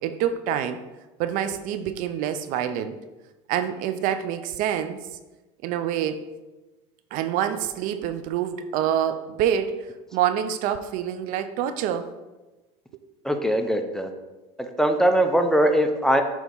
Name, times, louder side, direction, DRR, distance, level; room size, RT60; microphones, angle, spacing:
voice 1, 0.0-0.8 1.2-3.0 3.5-5.0 5.6-6.3 7.1-9.8 10.1-12.1, right 10 dB, 65° right, 10 dB, 0.5 m, -26 dB
voice 2, 13.2-14.1 14.8-16.2, right 1 dB, 5° left, 5 dB, 0.6 m, -21 dB
6.2 x 2.9 x 5.3 m, 1.1 s
supercardioid pair, 105°, 15 cm